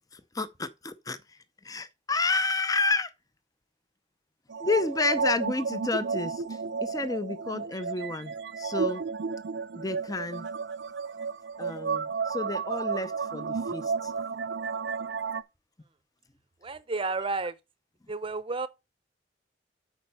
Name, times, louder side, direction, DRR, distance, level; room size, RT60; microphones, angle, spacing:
voice 1, 0.1-1.2 1.6-3.1 4.6-9.0 9.7-10.5 11.6-14.1, left 3 dB, 20° left, 0.6 m, -30 dB
sound 1, 4.5-15.4, right 5 dB, 70° right, 0.5 m, -32 dB
voice 2, 16.6-17.5 18.1-18.7, right 3 dB, 30° right, 0.7 m, -31 dB
9.0 x 4.1 x 5.5 m
head